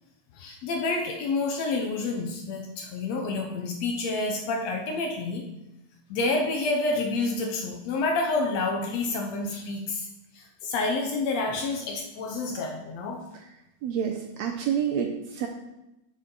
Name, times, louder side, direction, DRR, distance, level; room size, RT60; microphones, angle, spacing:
voice 1, 0.3-5.5 6.1-10.1 10.3-13.2, left 3 dB, 70° left, 2 dB, 1.7 m, -28 dB
voice 2, 13.8-15.5, right 8 dB, 80° right, 4 dB, 1.6 m, -28 dB
7.0 x 6.5 x 3.9 m, 0.93 s
omnidirectional pair, 3.5 m